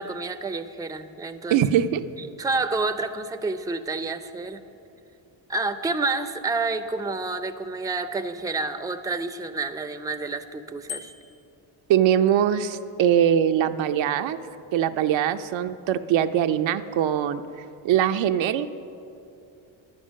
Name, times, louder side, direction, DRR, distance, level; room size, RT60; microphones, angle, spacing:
voice 1, 0.0-1.6 2.2-4.6 5.5-11.1, right 3 dB, 5° right, 9 dB, 0.5 m, -29 dB
voice 2, 1.5-2.0 11.9-14.4 14.7-17.4 17.8-18.7, right 10 dB, 65° right, 9 dB, 0.6 m, -22 dB
Bicycle bell, 10.9-11.5, left 8 dB, 90° left, 1.5 m, -38 dB
11.0 x 9.4 x 6.3 m, 2.7 s
supercardioid pair, 70°, 50 cm